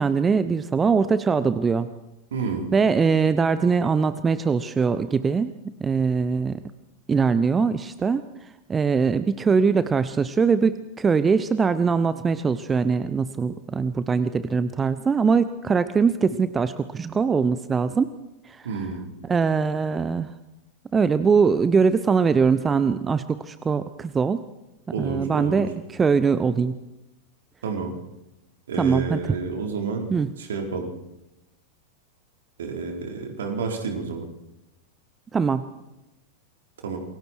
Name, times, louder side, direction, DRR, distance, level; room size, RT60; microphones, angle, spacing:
voice 1, 0.0-1.9 2.7-5.5 5.8-6.6 7.1-8.2 8.7-18.1 19.3-20.3 20.9-24.4 25.0-26.8 28.8-29.2 30.1-30.3 35.3-35.6, right 5 dB, 15° right, 13 dB, 0.9 m, -22 dB
voice 2, 2.3-2.7 18.6-19.2 24.9-25.7 27.6-27.9 28.7-30.1 30.3-30.9 32.6-34.3 36.8-37.0, right 5 dB, 65° right, 2 dB, 4.6 m, -30 dB
28.0 x 22.5 x 4.8 m, 0.95 s
figure-of-eight pair, 90°, 0 cm